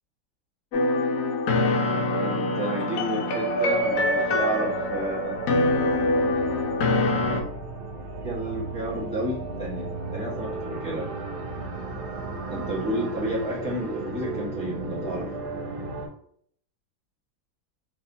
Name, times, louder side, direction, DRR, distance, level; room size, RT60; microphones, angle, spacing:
sound 1, 0.7-7.4, left 2 dB, 80° left, 0.7 m, -24 dB
voice 1, 2.2-5.4 8.2-11.1 12.5-15.3, right 1 dB, 5° left, -7 dB, 0.8 m, -31 dB
sound 2, 3.4-16.1, right 3 dB, 65° right, 0.5 m, -35 dB
3.3 x 3.0 x 2.6 m, 0.63 s
omnidirectional pair, 2.1 m